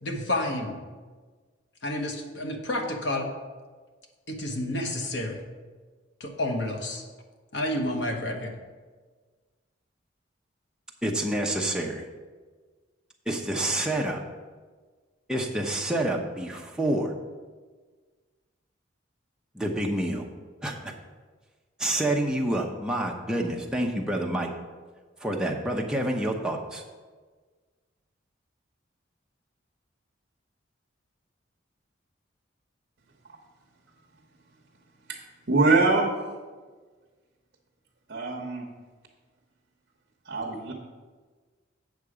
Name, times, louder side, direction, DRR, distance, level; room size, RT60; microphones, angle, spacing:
voice 1, 0.0-0.8 1.8-3.3 4.3-5.4 6.2-7.0 7.5-8.5, left 1 dB, 60° left, 3 dB, 1.0 m, -30 dB
voice 2, 11.0-12.1 13.3-14.2 15.3-17.1 19.5-20.2 20.6-20.9 21.8-24.5 25.2-26.8, right 1 dB, 5° right, 0 dB, 0.8 m, -28 dB
voice 3, 35.5-36.1 38.1-38.7 40.3-40.7, right 3 dB, 55° right, -1 dB, 0.9 m, -23 dB
8.2 x 6.5 x 4.9 m, 1.4 s
head